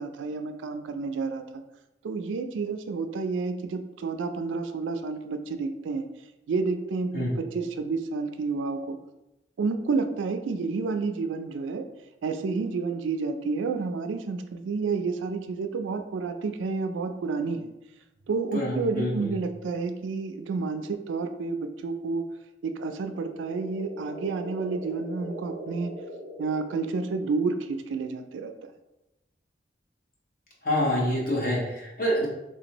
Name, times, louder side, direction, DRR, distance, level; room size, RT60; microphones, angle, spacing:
voice 1, 0.0-1.6 2.0-6.0 6.5-9.0 9.6-11.9 12.2-17.7 18.3-22.2 22.6-25.9 26.4-28.5, right 4 dB, 90° right, 8 dB, 0.3 m, -30 dB
voice 2, 18.5-19.3 30.6-32.3, equal, 50° left, -4 dB, 1.1 m, -26 dB
sound 1, 23.0-27.3, right 1 dB, 75° left, 0.8 m, -41 dB
3.3 x 2.5 x 2.9 m, 0.96 s
head